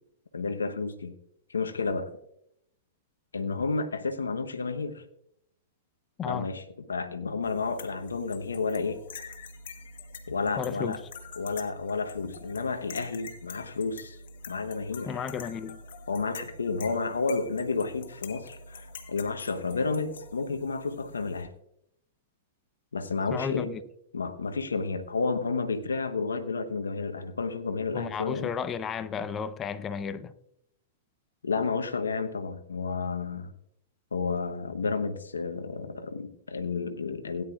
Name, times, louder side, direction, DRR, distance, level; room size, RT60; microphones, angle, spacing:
voice 1, 0.3-1.2 1.5-2.1 3.3-5.0 6.3-6.6 6.9-9.0 10.3-11.0 11.4-14.2 14.5-15.2 16.1-21.5 22.9-23.7 24.1-28.5 31.4-33.5 34.1-37.4, left 4 dB, 85° left, 0.9 m, -31 dB
sound 1, 7.4-21.4, left 3 dB, 70° left, 1.5 m, -45 dB
voice 2, 10.6-11.0 15.0-15.8 23.3-23.8 27.9-30.3, left 7 dB, 25° left, 0.7 m, -33 dB
17.0 x 10.0 x 2.4 m
hypercardioid pair, 110°, 0 cm